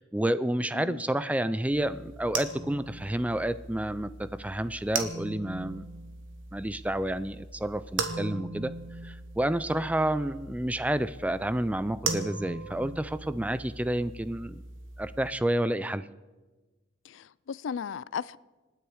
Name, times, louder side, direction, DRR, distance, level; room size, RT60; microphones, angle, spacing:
voice 1, 0.0-5.9 6.5-8.7 9.0-14.6 15.0-16.1, right 1 dB, 5° right, 0.4 m, -30 dB
sound 1, 1.7-15.3, right 4 dB, 85° right, 1.6 m, -39 dB
voice 2, 17.1-18.4, left 7 dB, 75° left, 0.4 m, -36 dB
26.5 x 10.0 x 4.8 m
head